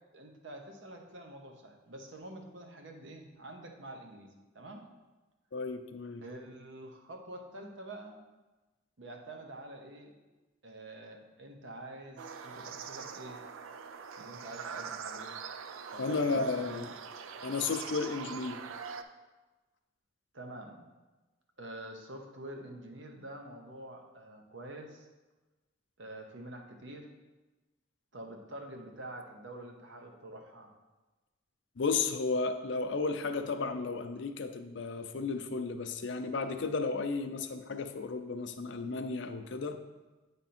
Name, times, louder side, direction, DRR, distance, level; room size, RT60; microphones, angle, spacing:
voice 1, 0.1-4.8 6.2-8.2 9.0-10.1 10.6-13.4 14.2-15.3 15.9-16.9 20.3-20.8 21.6-25.1 26.0-27.1 28.1-30.7, right 1 dB, 65° right, 3 dB, 0.9 m, -47 dB
voice 2, 5.5-6.2 16.0-16.9 17.4-18.6 31.8-39.8, left 4 dB, 60° left, 8 dB, 0.5 m, -33 dB
sound 1, 12.2-19.0, right 6 dB, 85° right, 0.4 m, -43 dB
9.2 x 3.5 x 4.3 m, 1.2 s
head